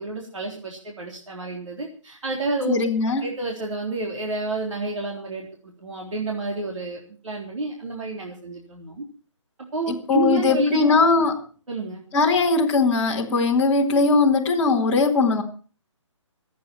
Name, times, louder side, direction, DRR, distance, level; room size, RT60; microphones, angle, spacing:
voice 1, 0.0-2.8 3.2-9.0 9.7-10.9 11.7-12.0, right 2 dB, 75° right, -1 dB, 3.8 m, -29 dB
voice 2, 2.7-3.3 9.9-11.3 12.1-15.4, left 3 dB, 5° left, -5 dB, 2.0 m, -20 dB
27.0 x 9.4 x 4.5 m, 0.39 s
hypercardioid pair, 175°, 16 cm